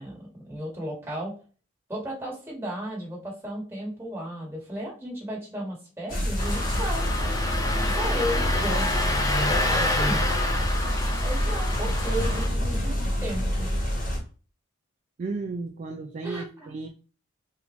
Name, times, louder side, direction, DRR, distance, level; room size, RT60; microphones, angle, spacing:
voice 1, 0.0-1.3 1.9-7.1 7.9-8.9 9.5-10.2 11.2-13.7 16.2-16.8, right 1 dB, 10° right, 1.5 m, -34 dB
sound 1, 6.1-14.2, equal, 45° left, 1.2 m, -27 dB
Engine starting, 6.4-12.5, left 2 dB, 15° left, 0.6 m, -28 dB
voice 2, 15.2-16.9, right 3 dB, 40° right, 0.3 m, -34 dB
3.6 x 2.5 x 3.0 m
head